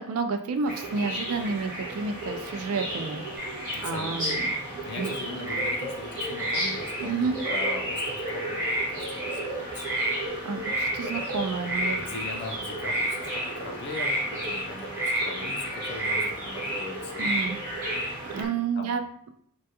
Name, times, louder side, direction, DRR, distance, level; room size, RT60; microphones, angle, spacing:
voice 1, 0.0-4.5 5.0-5.1 7.0-7.4 10.4-12.0 17.2-17.6 18.3-19.0, right 4 dB, 70° right, 7 dB, 0.3 m, -30 dB
sound 1, 0.6-18.5, right 1 dB, 40° right, 0.9 m, -35 dB
sound 2, 3.4-3.8 4.2-4.6 4.9-5.8 6.3-7.1 7.4-8.2 8.5-8.9 9.1-9.4 9.8-10.2 10.6-11.3 11.6-12.5 12.8-13.5 13.9-14.6 14.9-15.7 16.0-16.3 16.5-16.9 17.1-17.5 17.8-18.4, right 1 dB, 10° right, 0.5 m, -30 dB
voice 2, 3.7-4.6 4.8-10.0 11.9-17.3 18.3-19.1, left 3 dB, 50° left, 2 dB, 0.5 m, -40 dB
2.2 x 2.2 x 2.8 m, 0.64 s
head